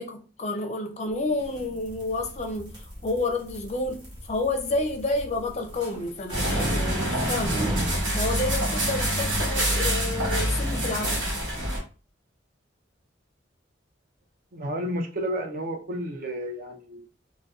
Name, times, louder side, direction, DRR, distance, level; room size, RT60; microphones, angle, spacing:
voice 1, 0.0-7.7 8.1-11.3, left 2 dB, 35° left, 0.4 m, -30 dB
sound 1, 1.3-8.0, right 1 dB, 25° right, 1.0 m, -37 dB
sound 2, 6.3-11.8, equal, 70° right, 1.2 m, -26 dB
voice 2, 14.5-17.1, equal, 50° right, 0.4 m, -31 dB
2.6 x 2.1 x 2.3 m
head